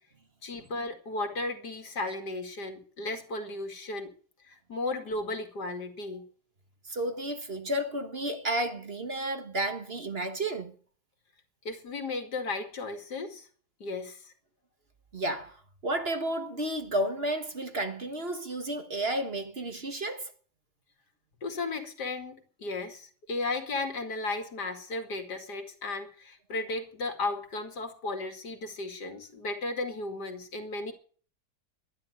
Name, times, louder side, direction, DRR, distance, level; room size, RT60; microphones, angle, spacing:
voice 1, 0.4-4.1 4.5-6.2 11.6-13.5 13.8-14.3 21.4-30.9, left 2 dB, 80° left, 2.8 m, -35 dB
voice 2, 6.8-10.7 15.1-20.3, right 1 dB, 40° right, 1.6 m, -32 dB
12.5 x 11.0 x 7.9 m
omnidirectional pair, 1.7 m